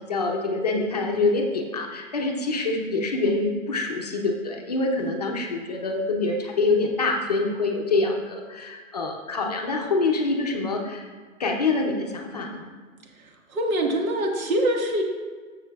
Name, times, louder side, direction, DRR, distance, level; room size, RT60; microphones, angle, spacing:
voice 1, 0.1-11.1 11.4-12.7, left 3 dB, 30° left, 1 dB, 0.5 m, -25 dB
voice 2, 13.1-15.0, right 1 dB, 85° right, 2 dB, 1.6 m, -25 dB
13.5 x 6.7 x 2.3 m, 1.5 s
hypercardioid pair, 175°, 40 cm